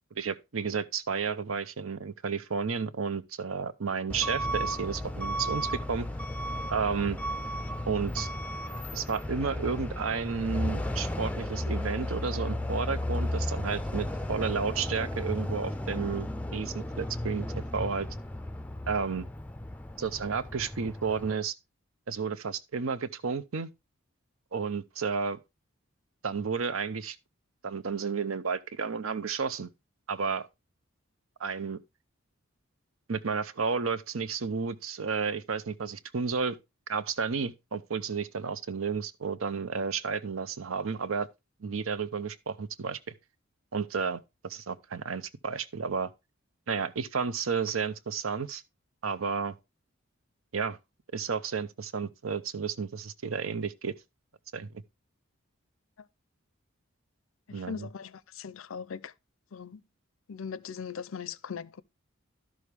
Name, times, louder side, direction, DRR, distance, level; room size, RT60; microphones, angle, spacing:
voice 1, 0.1-6.1 6.7-7.2 7.9-8.3 8.9-18.1 18.9-19.3 20.0-21.5 22.1-23.7 24.5-25.4 26.2-27.2 27.6-29.7 30.1-30.5 31.4-31.8 33.1-36.6 36.9-41.3 41.6-43.1 43.7-46.1 46.7-48.6 49.0-49.5 50.5-50.8 51.1-53.9 54.5-54.8 57.5-57.9, right 5 dB, 85° right, 0.7 m, -32 dB
Truck / Alarm, 4.1-21.3, left 1 dB, 5° left, 0.4 m, -34 dB
voice 2, 57.5-59.1 59.5-59.8 60.3-61.8, left 6 dB, 80° left, 0.5 m, -39 dB
12.0 x 6.4 x 3.4 m
head